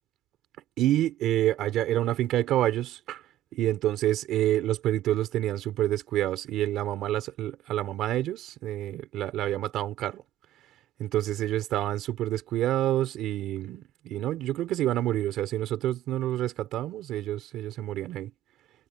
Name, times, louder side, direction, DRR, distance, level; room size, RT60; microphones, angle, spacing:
voice 1, 0.8-3.2 3.5-10.2 11.0-18.3, right 13 dB, 25° right, 3.5 m, -28 dB
supercardioid pair, 170°, 0 cm